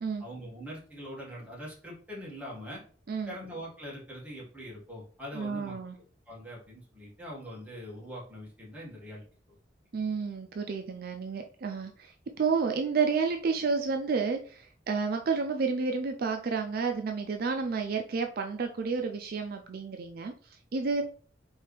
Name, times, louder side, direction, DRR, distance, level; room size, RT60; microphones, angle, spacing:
voice 1, 0.2-2.8 3.3-5.8 6.3-9.2, equal, 10° right, -5 dB, 1.7 m, -43 dB
voice 2, 5.4-6.0 9.9-21.0, right 5 dB, 50° right, 4 dB, 0.4 m, -31 dB
4.5 x 3.3 x 3.2 m, 0.43 s
head